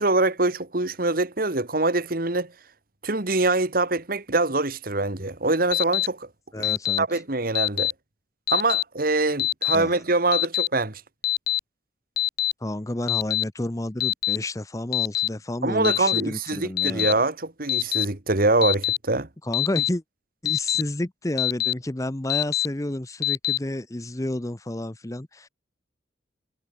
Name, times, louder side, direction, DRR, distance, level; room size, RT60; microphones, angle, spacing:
voice 1, 0.0-2.5 3.0-6.3 6.6-6.7 7.0-7.9 8.5-11.0 15.6-19.3, right 2 dB, 50° right, 1.9 m, -24 dB
Alarm, 5.7-6.1 6.6-7.0 7.6-7.9 8.5-8.8 9.4-9.8 10.3-10.7 11.2-11.6 12.2-12.5 13.1-13.4 14.0-14.4 14.9-15.3 15.8-16.2 16.8-17.1 17.7-18.1 18.6-19.0 19.5-19.9 20.5-20.8 21.4-21.7 22.3-22.7 23.2-23.6, left 13 dB, 55° left, 1.6 m, -24 dB
voice 2, 6.5-7.1 9.7-9.9 12.6-17.1 19.4-20.0 20.4-25.5, left 1 dB, 15° left, 0.8 m, -30 dB
head